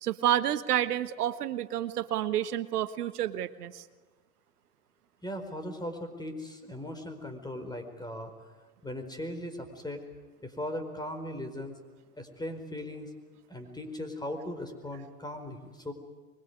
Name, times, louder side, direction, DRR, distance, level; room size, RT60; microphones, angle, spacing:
voice 1, 0.0-3.8, right 11 dB, 80° right, 13 dB, 1.3 m, -29 dB
voice 2, 5.2-8.3 8.8-10.0 10.4-11.8 12.2-13.1 13.5-15.9, left 1 dB, 10° left, 8 dB, 4.6 m, -38 dB
24.5 x 22.5 x 9.5 m, 1.3 s
hypercardioid pair, 95°, 45 cm